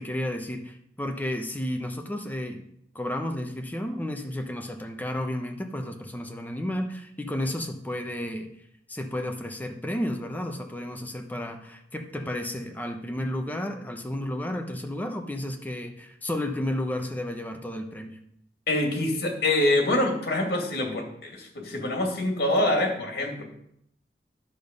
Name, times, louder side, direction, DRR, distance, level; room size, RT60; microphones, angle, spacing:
voice 1, 0.0-2.6 2.9-8.5 8.9-18.2, left 1 dB, 10° left, 4 dB, 0.9 m, -32 dB
voice 2, 18.7-23.4, left 1 dB, 60° left, 1 dB, 2.4 m, -25 dB
10.5 x 7.1 x 5.3 m, 0.73 s
head